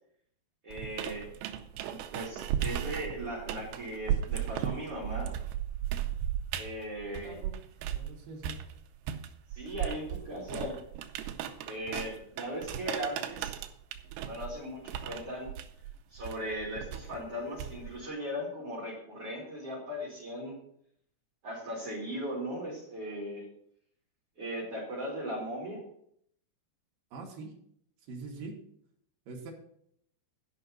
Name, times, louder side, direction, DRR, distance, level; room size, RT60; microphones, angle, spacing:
voice 1, 0.6-1.3 1.8-5.3 6.6-7.4 9.5-10.8 11.7-13.6 14.2-15.5 16.1-20.6 21.4-23.5 24.4-25.8, equal, 35° right, -6 dB, 3.5 m, -38 dB
sound 1, 0.7-8.1 8.4-18.0, right 10 dB, 85° right, 2.3 m, -36 dB
voice 2, 7.2-7.6 7.9-8.6 27.1-27.5 28.1-28.5 29.3-29.5, right 3 dB, 60° right, -1 dB, 2.8 m, -43 dB
12.0 x 5.6 x 6.6 m, 0.69 s
omnidirectional pair, 5.7 m